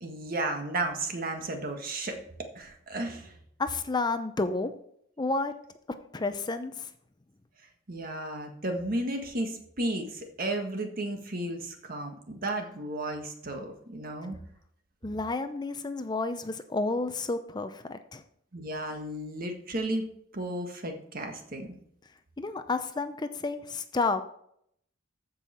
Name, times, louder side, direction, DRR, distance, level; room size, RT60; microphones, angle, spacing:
voice 1, 0.0-2.2 2.5-3.4 7.9-14.3 18.5-20.0 20.3-21.7, right 1 dB, 50° right, 4 dB, 1.7 m, -33 dB
voice 2, 3.6-4.7 5.2-5.5 6.1-6.9 15.0-18.2 22.4-24.2, left 3 dB, 20° left, 10 dB, 0.5 m, -30 dB
14.5 x 5.6 x 4.3 m, 0.69 s
head